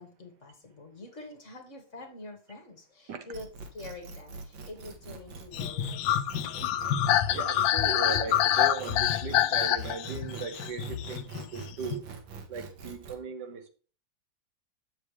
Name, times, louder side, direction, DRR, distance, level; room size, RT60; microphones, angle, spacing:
voice 1, 0.0-3.5 3.7-6.1 6.4-6.5, left 2 dB, 40° left, 1.7 m, -46 dB
sound 1, 3.3-13.2, right 5 dB, 80° right, 1.9 m, -43 dB
sound 2, 5.5-12.0, left 11 dB, 85° left, 1.3 m, -27 dB
voice 2, 7.3-12.1 12.5-13.7, right 5 dB, 65° right, 1.4 m, -38 dB
8.2 x 7.1 x 3.2 m
omnidirectional pair, 2.1 m